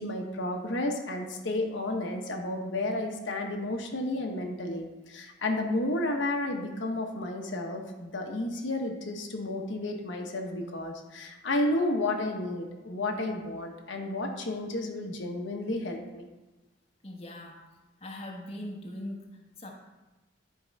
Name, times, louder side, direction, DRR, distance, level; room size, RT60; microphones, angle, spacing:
voice 1, 0.0-16.3, left 1 dB, 75° left, 2 dB, 1.1 m, -32 dB
voice 2, 17.0-17.6 18.0-19.7, left 1 dB, 30° left, -1 dB, 1.1 m, -41 dB
10.5 x 4.6 x 4.6 m, 1.1 s
head